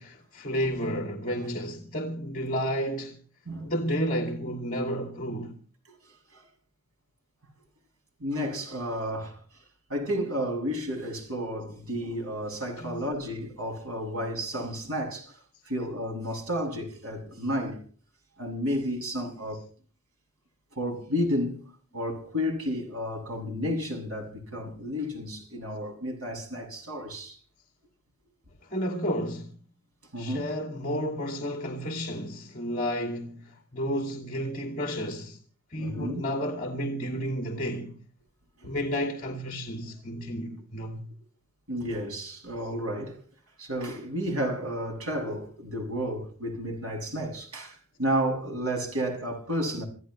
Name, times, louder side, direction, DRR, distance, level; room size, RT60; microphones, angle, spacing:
voice 1, 0.0-3.2 3.6-5.6 12.8-13.0 28.6-29.5 30.2-35.4 35.7-38.0 38.6-41.1, equal, 40° left, 2.6 m, -31 dB
voice 2, 8.2-9.4 9.9-15.4 15.6-17.8 18.4-19.6 20.8-27.4 30.1-30.5 35.8-36.3 38.6-38.7 40.2-40.3 41.7-43.2 43.6-49.8, equal, 80° right, 7.6 m, -32 dB
28.0 x 15.0 x 3.3 m
head